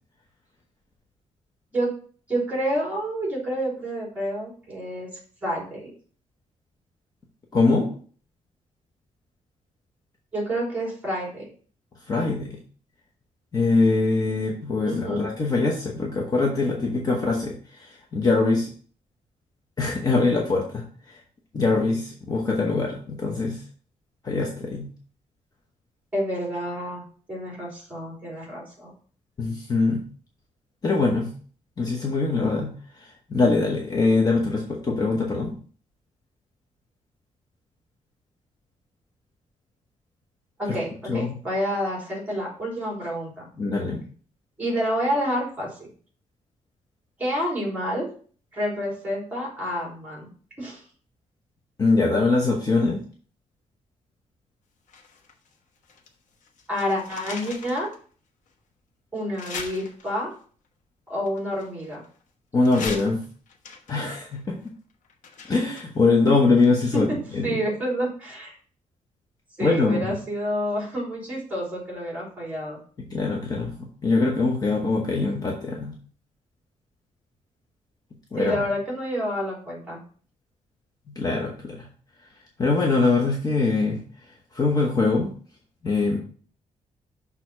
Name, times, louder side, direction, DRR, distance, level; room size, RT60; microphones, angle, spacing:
voice 1, 2.3-5.1 5.4-5.8 10.3-11.5 14.8-15.3 26.1-28.9 40.6-43.5 44.6-45.7 47.2-48.0 48.5-50.3 50.6-50.8 56.7-57.9 59.1-60.3 61.1-62.0 66.9-68.5 69.6-72.8 78.4-80.0, equal, 10° right, -3 dB, 3.4 m, -28 dB
voice 2, 7.5-7.9 12.1-12.6 13.5-18.7 19.8-21.2 21.5-23.6 24.2-24.9 29.4-30.0 30.8-31.3 31.8-35.5 41.1-41.4 43.6-44.0 51.8-53.0 62.5-63.2 63.9-64.4 65.5-67.5 69.6-70.2 73.1-76.0 78.3-78.6 81.1-81.9 82.6-84.0 84.5-85.3 85.8-86.2, left 3 dB, 30° left, -1 dB, 1.0 m, -23 dB
sound 1, 54.9-56.1 56.4-58.0 58.5-58.6 59.3-60.4 61.2-62.2 62.6-67.0 67.3-67.4, left 5 dB, 80° left, 1.1 m, -40 dB
6.4 x 3.8 x 5.9 m, 0.43 s
wide cardioid pair, 175°, 13 cm